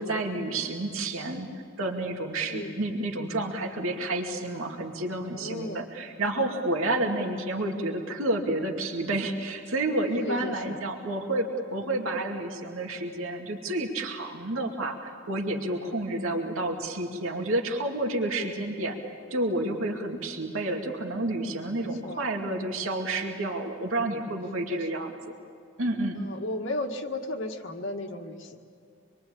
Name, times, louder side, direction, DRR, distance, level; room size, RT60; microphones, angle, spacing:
voice 1, 0.0-1.5 1.8-19.0 19.3-25.3 25.8-26.2, right 2 dB, 80° right, 2 dB, 2.4 m, -30 dB
voice 2, 2.4-2.7 5.3-5.9 10.2-10.8 15.7-16.0 21.8-22.2 24.5-24.8 26.2-28.6, left 1 dB, 65° left, 2 dB, 1.8 m, -35 dB
26.5 x 22.5 x 8.7 m, 2.5 s
head